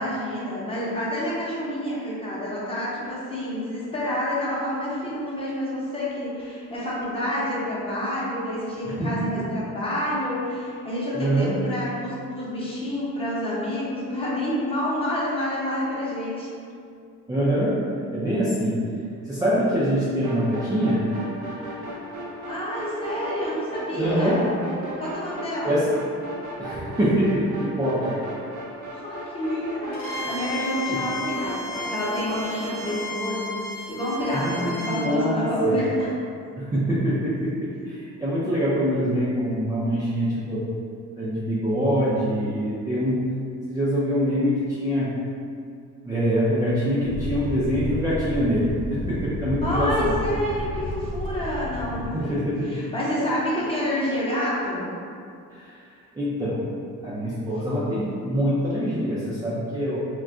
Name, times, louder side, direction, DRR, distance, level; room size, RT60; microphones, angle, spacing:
voice 1, 0.0-16.5 22.4-24.5 25.0-25.8 28.9-36.1 49.6-54.9, equal, 20° left, -7 dB, 0.8 m, -28 dB
voice 2, 8.8-9.3 11.1-11.6 17.3-17.8 18.1-18.9 19.3-21.0 23.9-24.4 25.6-25.9 26.6-28.2 30.9-31.0 34.3-35.8 36.6-40.6 41.2-43.2 43.7-45.1 46.0-50.1 52.1-52.8 55.5-55.8 56.1-56.7 57.0-60.0, equal, 10° right, -10 dB, 0.4 m, -24 dB
sound 1, 20.2-33.0, right 1 dB, 65° right, 0.7 m, -36 dB
Bowed string instrument, 29.9-35.1, left 2 dB, 90° left, 0.8 m, -33 dB
sound 2, 47.0-52.1, left 1 dB, 70° left, 0.4 m, -31 dB
2.4 x 2.2 x 3.6 m, 2.3 s
cardioid pair, 120°, 31 cm